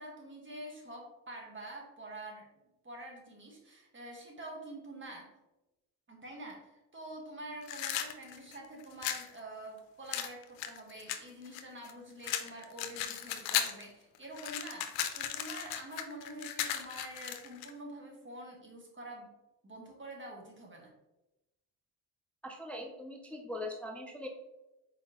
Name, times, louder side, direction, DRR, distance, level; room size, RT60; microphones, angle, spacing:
voice 1, 0.0-2.5 2.8-5.3 6.1-19.3 19.6-20.9, right 1 dB, 25° right, 0 dB, 1.6 m, -47 dB
sound 1, 7.6-9.3 10.1-11.9 12.2-13.8 14.1-17.7, left 10 dB, 80° left, 0.7 m, -36 dB
voice 2, 22.4-24.3, left 1 dB, 5° left, 3 dB, 0.5 m, -41 dB
4.5 x 3.8 x 2.9 m, 1.0 s
supercardioid pair, 75°, 44 cm